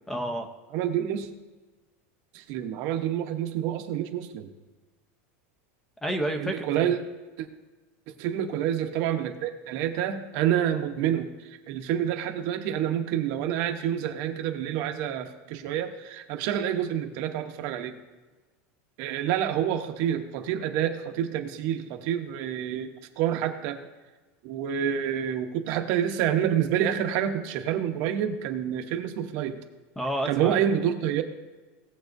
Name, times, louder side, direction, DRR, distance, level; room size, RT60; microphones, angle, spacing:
voice 1, 0.1-0.5 6.0-6.9 30.0-30.6, right 1 dB, 5° left, 5 dB, 0.7 m, -30 dB
voice 2, 0.7-1.3 2.3-4.5 6.4-7.0 7.4-7.5 8.2-18.0 19.0-23.8 24.4-29.6 30.3-31.2, right 10 dB, 50° right, 6 dB, 1.0 m, -28 dB
18.0 x 7.7 x 2.6 m, 1.2 s
supercardioid pair, 165°, 7 cm